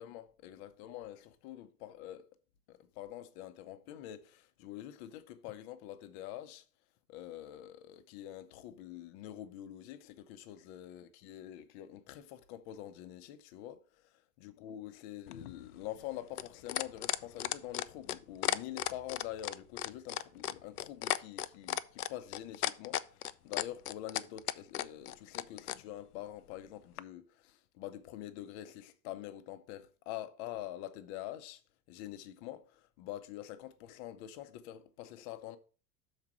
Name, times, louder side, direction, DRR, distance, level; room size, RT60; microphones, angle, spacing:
voice 1, 0.0-2.2 2.7-6.6 7.1-31.6 31.9-35.6, left 12 dB, 45° left, 0.8 m, -46 dB
sound 1, 15.3-25.8 27.0-27.1, left 13 dB, 70° left, 0.6 m, -35 dB
6.6 x 4.8 x 5.7 m
figure-of-eight pair, 80°, 48 cm